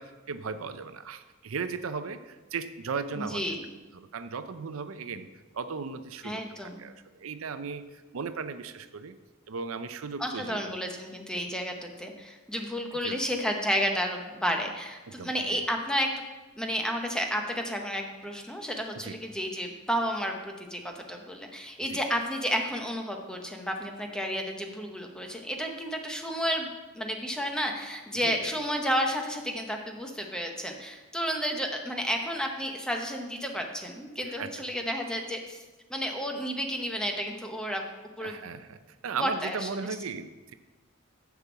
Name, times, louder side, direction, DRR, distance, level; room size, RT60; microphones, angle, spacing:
voice 1, 0.0-3.6 3.9-5.3 5.5-9.2 9.5-10.7 12.9-13.2 15.1-15.6 18.9-19.2 21.9-22.0 28.2-28.4 34.2-34.5 38.2-40.5, right 5 dB, 85° right, 11 dB, 0.5 m, -37 dB
voice 2, 3.2-3.6 6.2-6.8 10.2-16.1 16.6-35.6 35.9-37.8 38.2-38.4 39.2-39.7, equal, 5° left, 2 dB, 0.9 m, -31 dB
6.7 x 6.1 x 7.2 m, 1.2 s
head